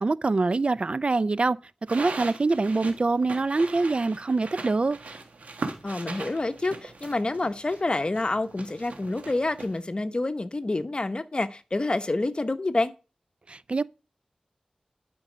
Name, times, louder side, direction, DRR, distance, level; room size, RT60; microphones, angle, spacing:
voice 1, 0.0-1.6 1.9-5.0 13.5-13.8, right 3 dB, 50° right, 0.4 m, -24 dB
sound 1, 1.9-9.8, right 3 dB, 85° right, 1.6 m, -40 dB
voice 2, 5.8-12.9, left 2 dB, 40° left, 0.9 m, -28 dB
12.0 x 5.4 x 5.0 m
wide cardioid pair, 60°, 2 cm